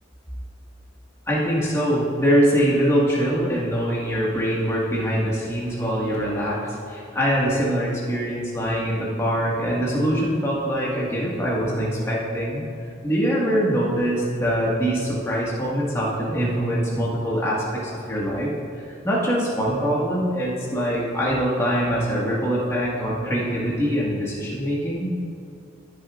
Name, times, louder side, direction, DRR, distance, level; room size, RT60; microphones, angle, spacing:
voice 1, 1.3-12.6 13.0-18.5 19.0-25.1, equal, 15° left, -6 dB, 1.6 m, -23 dB
15.5 x 6.6 x 2.4 m, 2.5 s
head